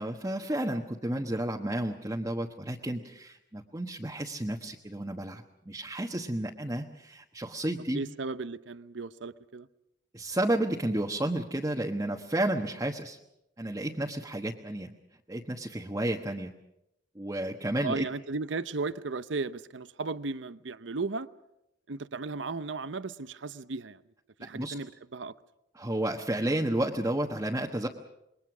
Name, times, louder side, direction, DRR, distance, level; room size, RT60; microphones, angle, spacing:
voice 1, 0.0-8.0 10.1-13.2 13.6-14.9 15.3-16.5 17.1-18.0 24.4-24.7 25.7-27.9, right 1 dB, 20° right, 1.2 m, -31 dB
voice 2, 7.9-9.7 10.9-11.0 17.8-21.3 21.9-24.0 24.4-25.3, right 3 dB, 90° right, 0.8 m, -35 dB
27.0 x 22.0 x 6.1 m
head